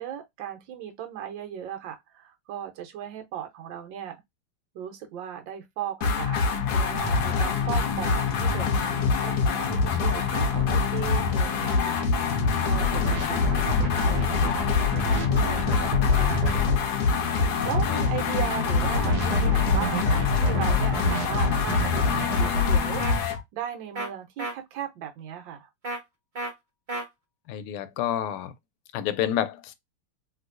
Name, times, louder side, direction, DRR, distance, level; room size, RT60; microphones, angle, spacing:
voice 1, 0.0-4.2 4.7-12.0 12.6-14.5 15.3-16.6 17.6-25.7, right 10 dB, 65° right, 1.4 m, -37 dB
sound 1, 6.0-23.4, left 4 dB, 65° left, 1.0 m, -25 dB
sound 2, 10.5-10.8 12.8-16.8 18.8-22.8, left 3 dB, 85° right, 0.8 m, -27 dB
sound 3, 23.0-23.1 23.9-24.1 24.4-24.5 25.8-26.0 26.3-26.5 26.9-27.0, right 2 dB, 50° right, 0.5 m, -31 dB
voice 2, 27.5-28.5 28.9-29.7, left 10 dB, 85° left, 1.5 m, -29 dB
3.2 x 2.9 x 2.4 m
omnidirectional pair, 2.4 m